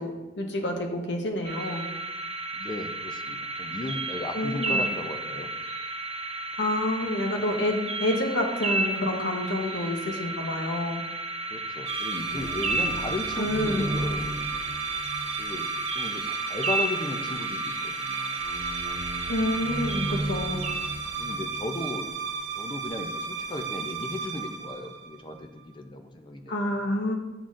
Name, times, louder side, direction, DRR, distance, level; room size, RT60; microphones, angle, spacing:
voice 1, 0.0-1.9 4.3-4.8 6.6-11.0 13.4-13.9 19.3-20.6 26.5-27.2, left 1 dB, 80° left, 2 dB, 0.9 m, -28 dB
sound 1, 1.4-21.3, right 2 dB, 35° right, 0.9 m, -33 dB
voice 2, 2.5-5.5 11.5-14.4 15.4-15.7 15.9-18.4 21.2-22.1 22.5-26.5, left 2 dB, 25° left, 6 dB, 0.6 m, -35 dB
sound 2, 11.9-25.5, right 4 dB, 85° right, 1.0 m, -33 dB
10.0 x 4.0 x 2.5 m, 1.1 s
head